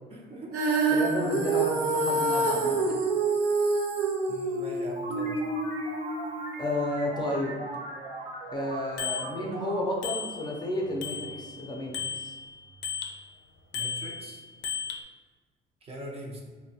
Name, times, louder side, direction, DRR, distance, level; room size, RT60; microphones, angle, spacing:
voice 1, 0.1-0.8 4.3-5.3 13.7-14.4 15.8-16.4, right 1 dB, 35° right, -1 dB, 0.6 m, -41 dB
Female singing, 0.5-6.8, right 3 dB, 80° right, 0.6 m, -27 dB
voice 2, 0.9-3.0 6.6-7.5 8.5-12.3, left 1 dB, 25° left, -1 dB, 0.5 m, -32 dB
sound 1, 5.0-11.2, right 2 dB, 55° right, 1.2 m, -40 dB
Bicycle bell, 9.0-9.3 10.0-10.7 11.0-13.2 13.7-15.0, left 7 dB, 80° left, 0.4 m, -35 dB
3.9 x 2.1 x 2.7 m, 1.4 s
cardioid pair, 110°, 17 cm